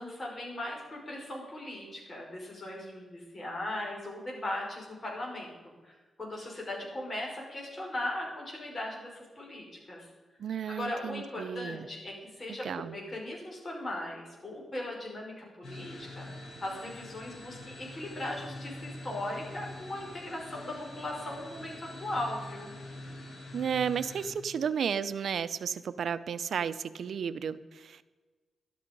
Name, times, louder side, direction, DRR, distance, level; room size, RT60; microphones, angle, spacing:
voice 1, 0.0-10.1 10.7-22.8, left 1 dB, 35° left, -2 dB, 5.5 m, -38 dB
voice 2, 10.4-11.9 12.5-13.0 23.5-28.1, right 7 dB, 80° right, 15 dB, 0.6 m, -33 dB
sound 1, 15.6-24.3, left 1 dB, 85° left, 4.2 m, -45 dB
12.5 x 12.0 x 5.4 m, 1.3 s
cardioid pair, 90°, 0 cm